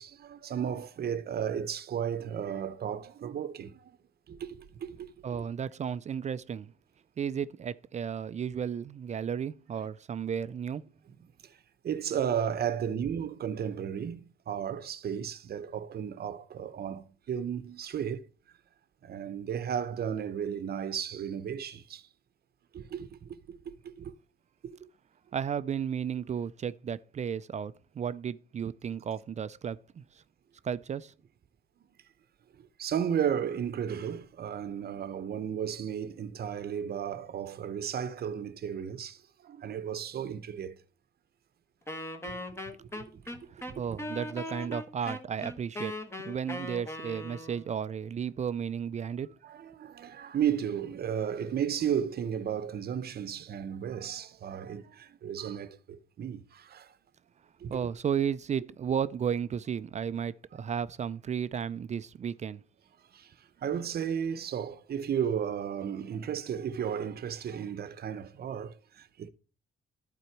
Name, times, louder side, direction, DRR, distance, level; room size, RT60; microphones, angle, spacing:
voice 1, 0.0-4.0 4.3-5.4 11.4-18.3 19.0-22.1 22.7-24.1 24.8-24.9 32.5-40.8 42.2-43.0 43.3-44.0 49.4-56.9 57.6-57.9 63.1-69.3, right 8 dB, 50° right, 0.8 m, -34 dB
voice 2, 5.2-6.7 7.2-10.9 25.3-30.0 30.6-31.1 43.5-45.9 46.2-49.3 57.7-62.6, right 8 dB, 35° right, 0.4 m, -33 dB
Wind instrument woodwind instrument, 41.9-47.7, left 1 dB, 15° left, 1.1 m, -39 dB
11.0 x 4.3 x 4.5 m
cardioid pair, 90°, 20 cm